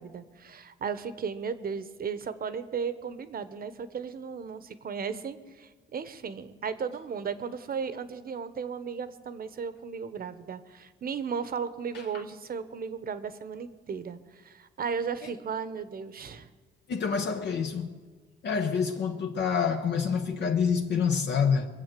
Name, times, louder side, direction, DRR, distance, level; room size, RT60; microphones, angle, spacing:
voice 1, 0.0-16.5, right 6 dB, 50° right, 1.1 m, -35 dB
voice 2, 16.9-17.9 18.4-21.7, left 6 dB, 60° left, 1.0 m, -27 dB
22.5 x 7.7 x 7.6 m
cardioid pair, 90°, 20 cm